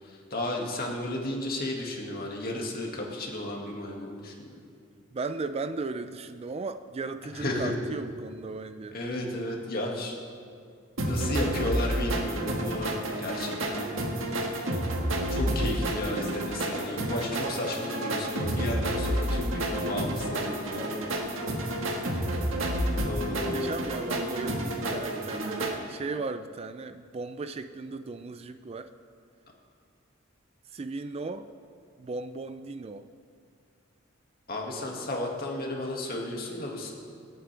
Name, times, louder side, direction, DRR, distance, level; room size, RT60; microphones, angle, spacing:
voice 1, 0.0-4.6 7.3-7.8 8.9-10.1 11.0-13.9 15.3-21.1 23.0-23.8 34.5-36.9, left 1 dB, 50° left, -1 dB, 2.1 m, -33 dB
voice 2, 5.1-9.0 21.7-21.8 23.3-28.9 30.7-31.5 32.0-33.1 34.7-34.9, right 3 dB, 30° right, 10 dB, 0.4 m, -36 dB
sound 1, 11.0-25.7, right 1 dB, 85° right, 1.6 m, -30 dB
25.5 x 8.8 x 3.4 m, 2.3 s
head